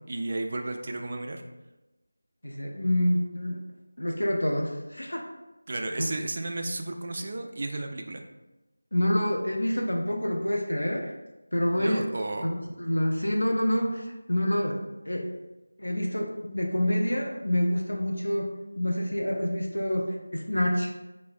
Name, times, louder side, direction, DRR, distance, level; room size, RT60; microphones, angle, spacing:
voice 1, 0.1-1.4 5.7-8.2 11.7-12.5, right 2 dB, 40° right, 4 dB, 0.3 m, -33 dB
voice 2, 2.4-3.6 4.0-5.2 6.0-6.1 8.9-11.1 11.5-12.1 12.4-15.3 15.8-20.9, left 1 dB, 75° left, 1 dB, 0.5 m, -27 dB
4.7 x 2.0 x 2.4 m, 1.0 s
figure-of-eight pair, 170°, 0 cm